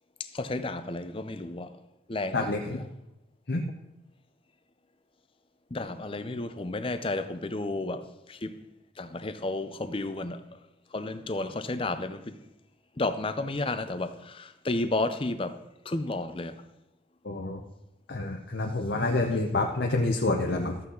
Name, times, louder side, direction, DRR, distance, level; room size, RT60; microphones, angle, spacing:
voice 1, 0.2-1.7 2.1-2.8 5.7-8.6 9.0-10.4 10.9-12.4 13.0-15.6 15.9-16.6 19.3-19.4, left 2 dB, 30° left, 0.6 m, -32 dB
voice 2, 2.3-2.9 3.5-3.6 17.2-17.6 18.1-20.8, left 2 dB, 60° left, 0.8 m, -28 dB
13.5 x 8.4 x 3.9 m
head